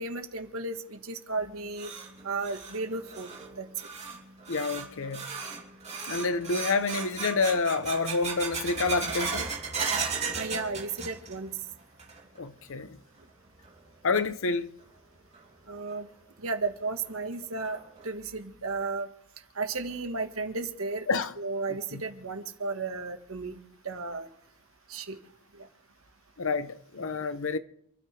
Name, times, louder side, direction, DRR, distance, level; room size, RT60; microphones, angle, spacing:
voice 1, 0.0-1.9 2.2-3.7 10.3-11.5 15.7-16.1 16.4-17.8 18.0-19.1 19.5-21.1 21.4-23.6 23.8-24.3 24.9-25.2 25.5-25.7, right 3 dB, 70° right, 1.6 m, -34 dB
sound 1, 1.4-11.5 11.8-12.4 12.8-12.9 13.6-13.7 15.3-15.4 15.9-16.0 16.5-16.6 17.0-17.1 17.6-18.0, right 5 dB, 30° right, 3.1 m, -36 dB
voice 2, 4.5-5.3 6.1-9.5 12.4-13.0 14.0-14.7 21.1-21.3 21.7-22.0 26.4-27.6, left 4 dB, 65° left, 0.9 m, -28 dB
28.0 x 12.5 x 3.4 m
head